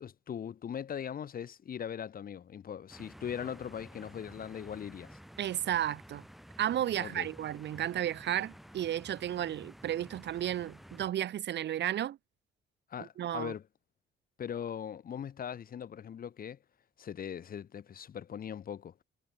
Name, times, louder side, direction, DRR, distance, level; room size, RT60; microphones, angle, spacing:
voice 1, 0.0-5.2 7.0-7.3 12.9-13.6 14.4-16.6 17.0-18.9, left 8 dB, 45° left, 0.9 m, -40 dB
sound 1, 2.9-11.1, equal, ahead, 7.9 m, -52 dB
voice 2, 5.4-6.2 6.6-12.2 13.2-13.5, right 11 dB, 60° right, 0.8 m, -33 dB
cardioid pair, 90°, 20 cm